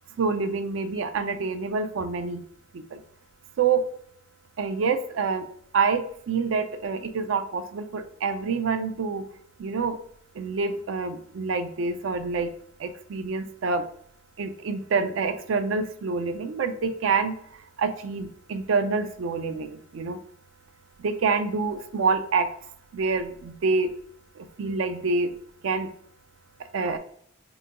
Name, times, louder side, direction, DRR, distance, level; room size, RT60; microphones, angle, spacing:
voice 1, 0.2-2.4 2.7-3.0 3.6-3.9 4.6-5.5 5.7-9.2 9.6-10.0 10.4-12.5 12.8-13.8 14.4-17.3 17.8-20.2 21.0-22.5 22.9-23.9 24.4-25.3 25.6-25.9 26.7-27.0, right 4 dB, 65° right, 8 dB, 0.4 m, -27 dB
3.8 x 2.2 x 3.6 m, 0.64 s
head